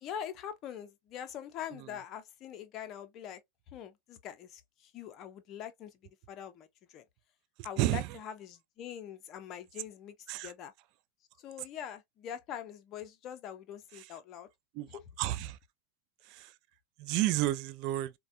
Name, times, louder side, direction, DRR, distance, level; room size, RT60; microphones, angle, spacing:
voice 1, 0.0-3.4 3.7-5.9 6.3-7.0 7.6-10.2 10.4-10.7 11.4-14.5 14.9-15.0, left 9 dB, 40° left, 0.7 m, -43 dB
voice 2, 7.8-8.1 10.3-10.5 14.0-14.1 14.7-14.9 15.2-15.6 16.3-16.5 17.0-18.1, right 16 dB, 45° right, 0.4 m, -31 dB
4.1 x 2.3 x 2.5 m
figure-of-eight pair, 90°, 0 cm